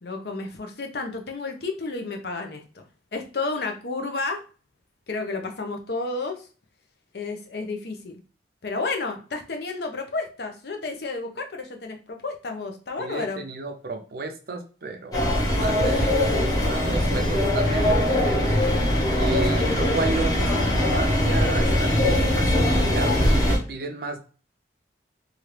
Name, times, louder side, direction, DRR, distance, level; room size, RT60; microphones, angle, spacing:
voice 1, 0.0-2.8 3.1-4.4 5.1-6.5 7.1-8.1 8.6-13.4, left 3 dB, 60° left, 3 dB, 0.6 m, -31 dB
voice 2, 13.0-18.6 19.1-24.2, right 3 dB, 55° right, 5 dB, 0.5 m, -33 dB
sound 1, 15.1-23.6, left 1 dB, 20° left, 0.8 m, -21 dB
3.0 x 2.4 x 3.3 m, 0.36 s
head